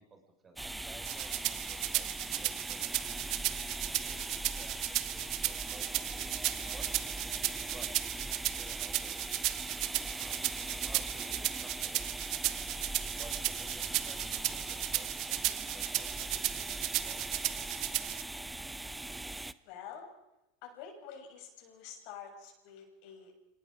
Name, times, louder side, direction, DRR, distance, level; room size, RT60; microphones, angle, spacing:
voice 1, 0.0-3.3 4.0-6.9 7.7-9.3 10.2-12.1 13.1-18.0, right 4 dB, 25° right, 5 dB, 5.2 m, -55 dB
sound 1, 0.6-19.5, right 2 dB, 10° right, 0.8 m, -41 dB
sound 2, 1.0-18.2, right 17 dB, 55° right, 1.1 m, -35 dB
voice 2, 19.6-20.1 20.6-23.3, left 7 dB, 60° left, 2 dB, 7.3 m, -48 dB
26.5 x 19.5 x 5.2 m, 0.92 s
hypercardioid pair, 105°, 0 cm